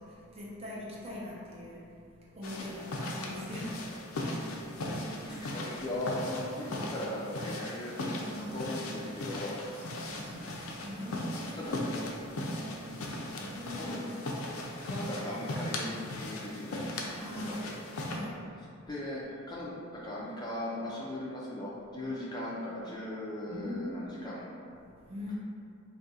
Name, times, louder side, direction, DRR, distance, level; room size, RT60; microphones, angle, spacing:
voice 1, 0.0-5.6 6.5-7.0 8.2-8.7 9.7-12.1 12.5-14.8 17.1-17.7 18.0-18.4 18.8-18.9 23.5-24.3 25.0-25.4, left 1 dB, 30° right, -5 dB, 0.6 m, -43 dB
sound 1, 2.4-18.2, left 1 dB, 80° left, 0.5 m, -38 dB
voice 2, 5.2-7.9 8.5-9.6 10.9-11.3 11.5-11.8 13.8-14.0 14.8-16.8 17.4-17.7 18.1-18.3 18.9-24.5, left 1 dB, 20° left, -5 dB, 0.4 m, -38 dB
2.7 x 2.5 x 4.0 m, 2.4 s
head